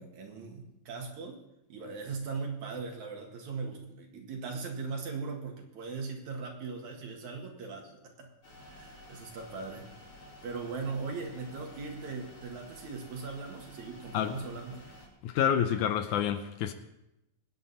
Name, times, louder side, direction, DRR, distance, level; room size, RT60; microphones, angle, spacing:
voice 1, 0.0-1.4 1.7-8.3 8.6-9.9 10.4-14.8, right 4 dB, 65° right, 3.1 m, -39 dB
sound 1, 8.4-15.1, left 1 dB, 45° left, 5.7 m, -52 dB
voice 2, 15.2-16.7, left 9 dB, 75° left, 2.0 m, -28 dB
23.0 x 9.5 x 4.1 m
omnidirectional pair, 3.7 m